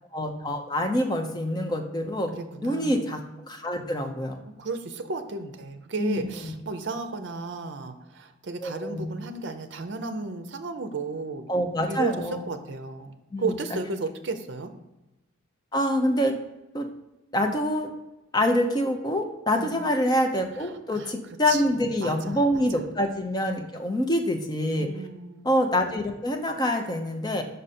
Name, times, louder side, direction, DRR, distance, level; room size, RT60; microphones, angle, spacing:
voice 1, 0.1-2.3 2.6-4.4 6.0-6.5 8.6-9.2 11.5-12.4 13.3-13.6 15.7-16.3 16.7-16.9 17.3-17.9 18.3-24.9 25.4-27.4, left 1 dB, 20° left, 3 dB, 0.6 m, -26 dB
voice 2, 2.3-3.0 4.6-11.5 11.9-12.1 12.5-13.1 13.4-14.7 19.5-19.9 20.9-21.1 21.5-22.5 24.8-25.5, right 3 dB, 55° right, 8 dB, 0.6 m, -33 dB
5.4 x 5.0 x 4.2 m, 1.0 s
head